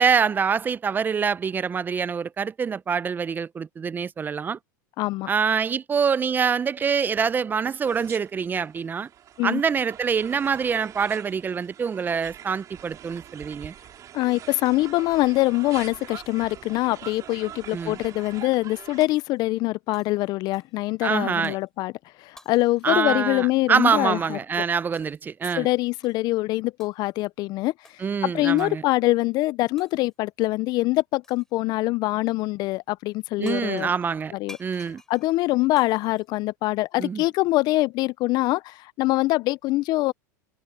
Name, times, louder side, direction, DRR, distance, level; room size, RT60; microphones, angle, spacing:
voice 1, 0.0-4.6 5.3-9.1 9.4-13.7 17.7-18.0 21.0-21.6 22.8-25.7 28.0-28.8 33.4-34.3 34.6-35.0 37.0-37.2, right 6 dB, 20° right, 0.5 m, -25 dB
voice 2, 5.0-5.3 9.4-9.6 14.1-21.9 22.2-24.4 25.6-33.9 34.3-34.6 35.1-40.1, left 19 dB, 40° left, 0.4 m, -24 dB
sound 1, 7.8-19.0, right 10 dB, 35° right, 3.8 m, -44 dB
Shatter, 19.0-19.7 19.9-20.9 21.4-21.7 22.4-23.9 24.9-25.3 26.0-26.4 26.8-27.3 27.8-28.0 28.6-28.9 29.8-30.3 31.2-31.6 33.2-33.3 33.5-37.0, left 1 dB, 5° left, 4.6 m, -52 dB
supercardioid pair, 120°, 10 cm